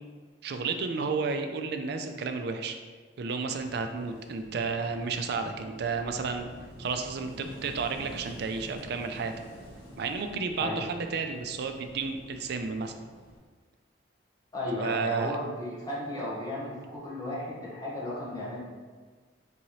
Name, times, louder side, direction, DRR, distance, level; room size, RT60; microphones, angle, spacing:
voice 1, 0.4-2.8 3.2-6.5 6.8-9.3 10.0-12.9 14.8-15.4, right 4 dB, 60° right, 6 dB, 0.4 m, -32 dB
Wind / Waves surf, 3.4-13.4, equal, 85° left, 1.1 m, -49 dB
voice 2, 14.5-18.6, left 1 dB, 20° left, -6 dB, 1.1 m, -34 dB
4.2 x 3.7 x 3.1 m, 1.5 s
head